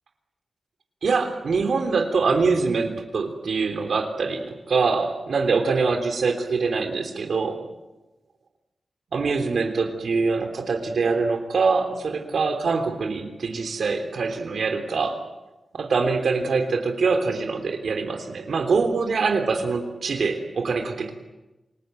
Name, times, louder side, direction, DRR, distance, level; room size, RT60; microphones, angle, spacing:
voice 1, 1.0-7.6 9.1-15.2 15.7-21.1, right 4 dB, 80° right, 5 dB, 3.4 m, -24 dB
28.5 x 20.5 x 9.2 m, 1.1 s
wide cardioid pair, 175°, 0 cm